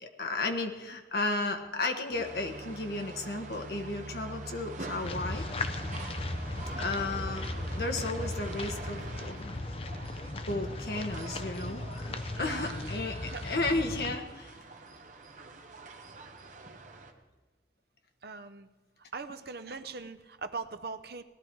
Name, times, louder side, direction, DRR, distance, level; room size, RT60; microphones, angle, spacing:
voice 1, 0.0-5.4 6.8-7.4 7.8-9.6 10.3-14.5, left 2 dB, 65° left, 4 dB, 1.3 m, -34 dB
sound 1, 2.1-17.1, right 2 dB, 45° right, 1.1 m, -44 dB
sound 2, 5.0-14.2, left 2 dB, 35° left, 0.6 m, -37 dB
voice 2, 12.1-12.8 13.3-13.5 18.2-18.7 19.1-21.2, right 4 dB, 60° right, 10 dB, 0.7 m, -41 dB
18.0 x 11.5 x 4.6 m, 1.2 s
head